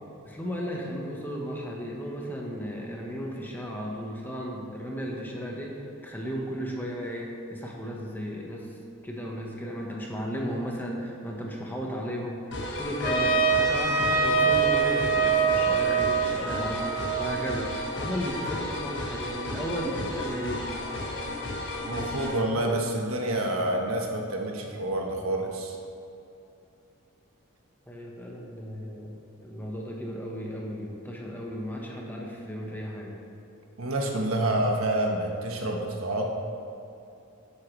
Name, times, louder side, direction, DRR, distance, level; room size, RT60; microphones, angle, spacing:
voice 1, 0.2-8.7 9.0-20.7 27.9-33.2, equal, 10° left, -2 dB, 1.2 m, -35 dB
sound 1, 12.5-22.4, left 1 dB, 55° left, 1.5 m, -34 dB
Trumpet, 13.0-17.9, right 5 dB, 40° left, 2.4 m, -24 dB
voice 2, 21.9-25.8 33.8-36.3, right 1 dB, 75° right, 1 dB, 1.3 m, -28 dB
11.5 x 8.5 x 3.3 m, 2.7 s
head